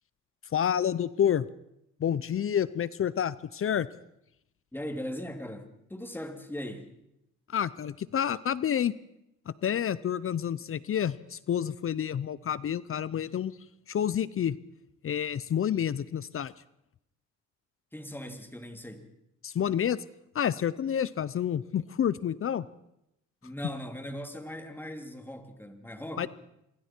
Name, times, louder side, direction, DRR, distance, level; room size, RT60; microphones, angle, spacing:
voice 1, 0.5-1.5 2.0-3.9 7.5-8.9 9.5-13.6 13.9-14.6 15.0-16.5 19.4-20.0 20.3-22.7 26.2-26.3, left 9 dB, 45° left, 0.7 m, -29 dB
voice 2, 4.7-6.9 17.9-19.1 23.4-26.3, equal, 5° left, 2.8 m, -39 dB
26.5 x 23.5 x 4.5 m
cardioid pair, 90°, 30 cm